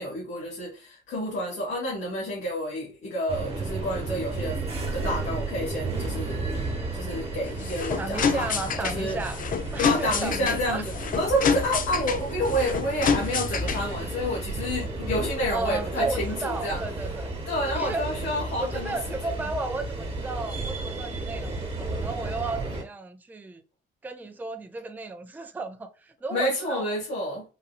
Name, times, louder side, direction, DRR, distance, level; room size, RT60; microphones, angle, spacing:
voice 1, 0.0-4.6 4.9-6.4 6.9-9.2 9.8-16.8 17.5-19.0 19.2-19.3 26.3-27.4, equal, 85° left, 1.7 m, -29 dB
sound 1, 3.3-22.8, right 2 dB, 30° right, 1.3 m, -33 dB
sound 2, 7.4-14.0, left 6 dB, 45° left, 0.5 m, -28 dB
voice 2, 8.0-9.4 9.7-10.8 15.5-17.3 17.7-18.1 18.6-23.6 24.0-26.9, right 3 dB, 10° right, 0.4 m, -34 dB
4.1 x 2.6 x 2.4 m
cardioid pair, 90°, 20 cm